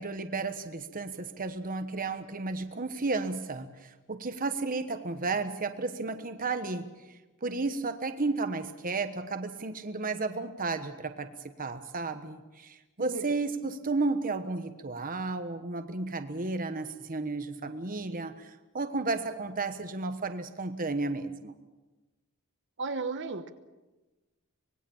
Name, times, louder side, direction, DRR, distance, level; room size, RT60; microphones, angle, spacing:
voice 1, 0.0-11.3 11.6-21.5, right 3 dB, 40° right, 8 dB, 1.2 m, -33 dB
voice 2, 22.8-23.5, right 4 dB, 55° right, 8 dB, 1.2 m, -34 dB
25.0 x 20.5 x 7.2 m, 1.2 s
head